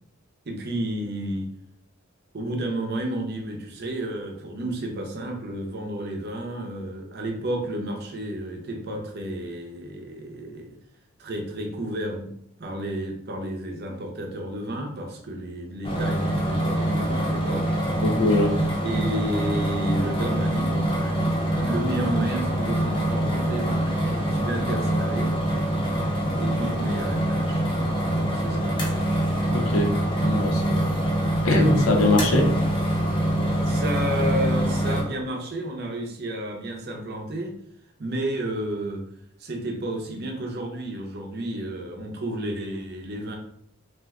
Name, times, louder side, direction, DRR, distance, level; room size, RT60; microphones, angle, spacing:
voice 1, 0.5-1.5 2.3-10.7 11.2-12.3 12.6-17.6 18.8-25.4 26.4-27.7 28.0-29.1 33.6-37.6 38.0-39.1 39.4-43.4, right 1 dB, 50° right, 2 dB, 0.6 m, -31 dB
sound 1, 15.8-35.0, right 1 dB, 25° left, 0.6 m, -24 dB
voice 2, 18.0-18.6 29.5-29.9 30.2-30.9 31.4-32.5, left 2 dB, 70° left, 1 dB, 0.6 m, -22 dB
2.5 x 2.2 x 3.5 m, 0.70 s
head